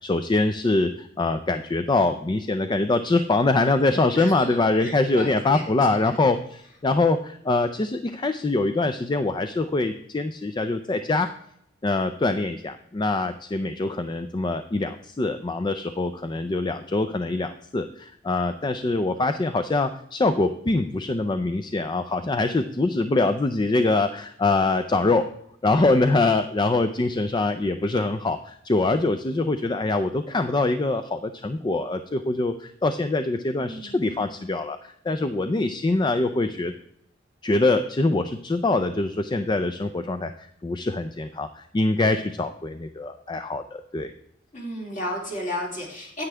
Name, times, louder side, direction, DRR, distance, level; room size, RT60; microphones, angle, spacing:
voice 1, 0.0-11.3 11.8-25.3 25.6-36.7 37.4-44.1, left 2 dB, 25° left, 10 dB, 0.4 m, -24 dB
voice 2, 4.1-5.7 6.0-6.1 33.6-34.3 44.5-46.2, left 1 dB, 45° left, -2 dB, 3.1 m, -34 dB
9.5 x 9.1 x 3.3 m, 0.72 s
head